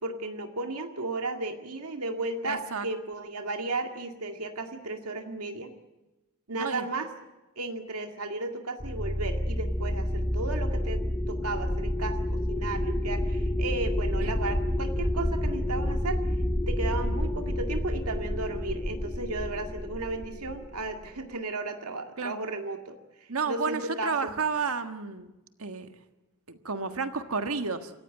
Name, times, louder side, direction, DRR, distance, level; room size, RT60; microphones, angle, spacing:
voice 1, 0.0-5.7 6.5-7.1 7.6-16.2 16.7-24.3, right 2 dB, 85° right, 4 dB, 2.1 m, -34 dB
voice 2, 2.4-2.9 6.6-6.9 14.2-14.3 22.2-22.4 23.3-25.3 25.6-25.9 26.5-27.9, right 4 dB, 70° right, 8 dB, 1.6 m, -31 dB
sound 1, 8.8-21.1, left 1 dB, 15° left, 1.7 m, -29 dB
27.5 x 15.5 x 9.2 m, 1.0 s
head